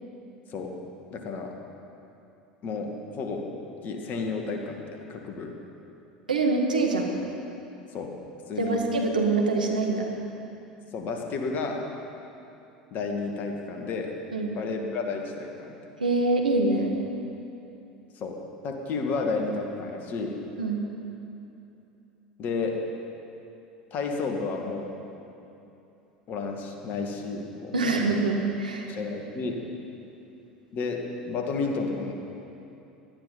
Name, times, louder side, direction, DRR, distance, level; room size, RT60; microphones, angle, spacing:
voice 1, 1.1-1.5 2.6-3.4 3.8-5.5 7.9-8.2 8.5-8.8 10.9-11.9 12.9-14.1 14.6-15.7 18.2-18.4 18.6-20.4 22.4-22.7 23.9-24.9 26.3-27.7 28.9-29.6 30.7-32.1, left 4 dB, 45° left, 2 dB, 2.1 m, -31 dB
voice 2, 6.3-7.1 8.6-10.1 14.3-14.6 16.0-16.9 20.6-20.8 27.7-28.9, right 3 dB, 85° right, 1 dB, 1.7 m, -24 dB
17.0 x 12.5 x 5.5 m, 2.8 s
figure-of-eight pair, 75°, 4 cm